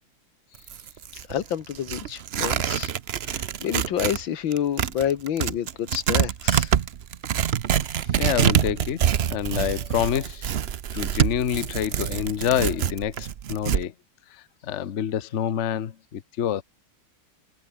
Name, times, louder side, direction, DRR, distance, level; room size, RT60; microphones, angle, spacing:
Tearing, 0.5-4.2 4.5-13.8, right 9 dB, 75° right, 0.5 m, -25 dB
voice 1, 1.3-2.9 3.2-6.8, left 9 dB, 80° left, 2.0 m, -28 dB
voice 2, 8.2-9.0 9.3-10.5 10.9-13.9 14.7-16.6, left 9 dB, 45° left, 1.0 m, -27 dB
omnidirectional pair, 2.1 m